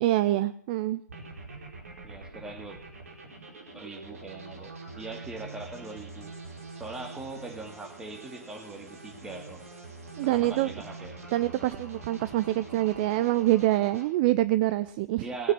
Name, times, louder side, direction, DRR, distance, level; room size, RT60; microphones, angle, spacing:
voice 1, 0.0-1.0 10.2-10.7 11.3-15.3, right 16 dB, 30° right, 14 dB, 0.6 m, -25 dB
sound 1, 1.1-14.0, right 3 dB, 60° right, 4.9 m, -45 dB
voice 2, 2.0-2.8 3.7-6.3 6.8-9.7 10.3-11.2 15.2-15.5, right 2 dB, 5° right, 3 dB, 2.4 m, -41 dB
20.0 x 9.3 x 6.1 m, 0.62 s
figure-of-eight pair, 120°, 9 cm